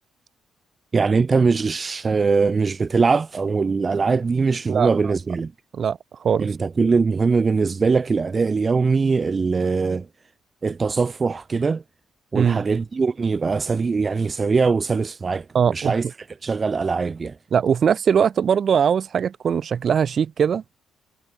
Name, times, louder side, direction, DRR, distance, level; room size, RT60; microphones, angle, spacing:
voice 1, 0.9-5.5 6.4-10.1 10.6-11.8 12.3-16.1 16.4-17.4, right 4 dB, 35° right, 2.2 m, -21 dB
voice 2, 4.7-5.1 5.7-6.5 12.3-12.6 15.5-16.0 17.5-20.8, right 7 dB, 50° right, 5.1 m, -21 dB
cardioid pair, 90°, 0 cm